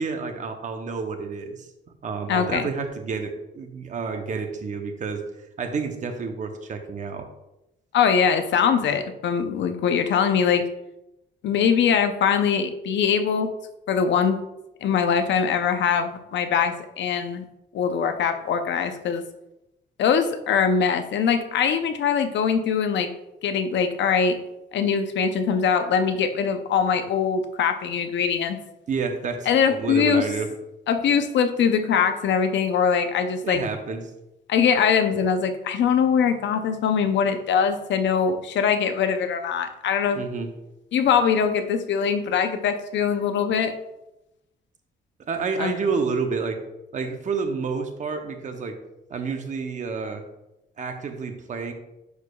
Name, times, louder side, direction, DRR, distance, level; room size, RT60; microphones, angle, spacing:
voice 1, 0.0-1.7 2.0-5.2 5.6-7.3 28.9-30.5 33.4-34.0 40.1-40.5 45.3-46.6 46.9-48.8 49.1-50.2 50.8-51.7, right 5 dB, 40° right, 6 dB, 0.8 m, -29 dB
voice 2, 2.3-2.6 7.9-10.6 11.4-13.5 13.9-14.4 14.8-17.4 17.7-19.2 20.0-23.1 23.4-24.4 24.7-28.6 29.5-30.2 30.9-33.6 34.5-40.3 40.9-43.7 45.6-45.7, left 7 dB, 70° left, 8 dB, 0.7 m, -22 dB
11.0 x 4.7 x 2.3 m, 0.92 s
cardioid pair, 160°, 19 cm